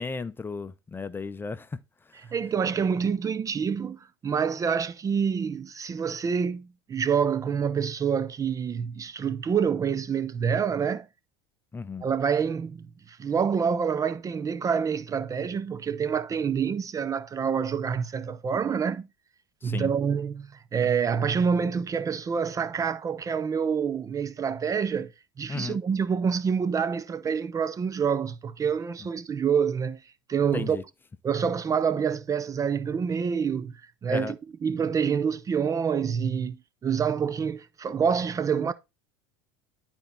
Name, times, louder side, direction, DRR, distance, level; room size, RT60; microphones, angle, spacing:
voice 1, 0.0-2.3 11.7-12.1 19.6-19.9 25.5-25.8 30.5-30.8 34.1-34.3, left 4 dB, 15° left, 0.7 m, -35 dB
voice 2, 2.3-11.1 12.0-19.1 19.6-25.1 25.4-30.0 30.3-30.8 31.2-34.3 34.6-38.7, right 6 dB, 25° right, 0.6 m, -27 dB
12.0 x 4.4 x 4.1 m
hypercardioid pair, 100°, 13 cm